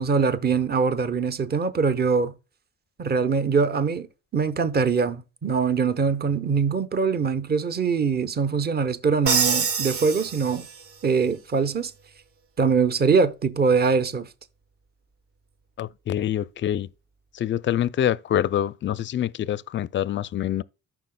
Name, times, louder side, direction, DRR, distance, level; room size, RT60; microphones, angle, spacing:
voice 1, 0.0-2.3 3.0-4.1 4.3-10.7 11.0-11.9 12.6-14.3, right 5 dB, 30° right, 0.8 m, -23 dB
Crash cymbal, 9.3-11.0, right 5 dB, 50° right, 1.2 m, -25 dB
voice 2, 15.8-16.9 17.3-20.6, left 11 dB, 40° left, 0.4 m, -25 dB
13.5 x 5.7 x 2.2 m
cardioid pair, 90°, 30 cm